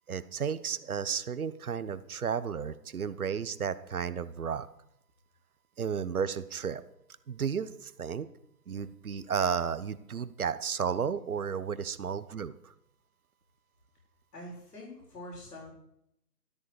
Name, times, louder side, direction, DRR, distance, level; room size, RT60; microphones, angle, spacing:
voice 1, 0.1-4.7 5.8-6.8 7.3-8.3 8.7-12.7, right 7 dB, 60° right, 14 dB, 1.1 m, -33 dB
voice 2, 14.3-15.7, left 1 dB, 75° left, -4 dB, 6.3 m, -45 dB
13.5 x 13.0 x 4.9 m, 0.78 s
hypercardioid pair, 155°, 49 cm